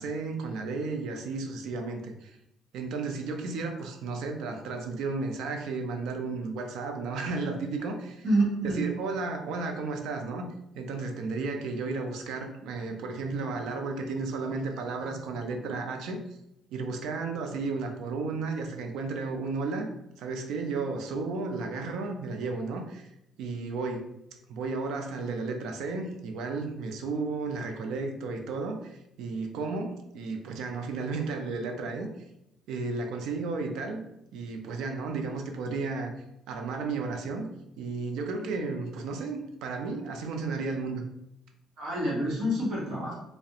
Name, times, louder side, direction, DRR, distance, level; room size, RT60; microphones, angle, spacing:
voice 1, 0.0-2.4 2.7-8.2 8.6-10.5 10.8-16.2 16.7-19.9 20.2-23.1 23.4-24.1 24.5-32.1 32.7-34.0 34.3-36.1 36.5-37.5 37.8-41.0, right 3 dB, 70° right, 4 dB, 0.4 m, -33 dB
voice 2, 8.2-8.8 41.8-43.1, right 1 dB, 45° right, -5 dB, 0.9 m, -27 dB
2.4 x 2.0 x 2.7 m, 0.83 s
cardioid pair, 160°, 0 cm